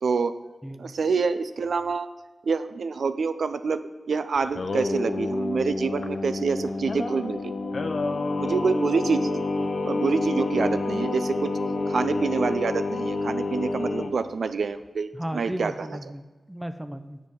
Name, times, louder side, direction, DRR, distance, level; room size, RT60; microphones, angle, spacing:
voice 1, 0.0-0.3 0.8-2.1 2.4-7.5 8.4-9.5 9.8-11.5 11.9-15.9, right 5 dB, 75° right, 10 dB, 0.4 m, -27 dB
voice 2, 0.6-0.9 15.1-17.2, equal, 10° right, 10 dB, 0.7 m, -35 dB
Singing, 4.4-14.1, left 2 dB, 65° left, 0.7 m, -28 dB
7.4 x 5.3 x 6.3 m, 1.3 s
cardioid pair, 50°, 0 cm